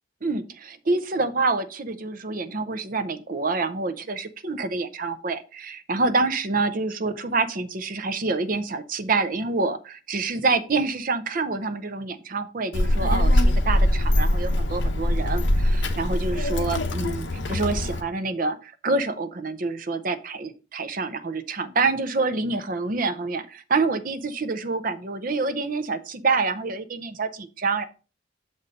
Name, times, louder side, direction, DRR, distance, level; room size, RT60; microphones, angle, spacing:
voice 1, 0.2-27.8, right 3 dB, 45° right, 10 dB, 0.6 m, -27 dB
Child speech kid speaking, 12.7-18.0, left 1 dB, 65° left, 0.9 m, -22 dB
6.8 x 4.2 x 5.2 m, 0.34 s
head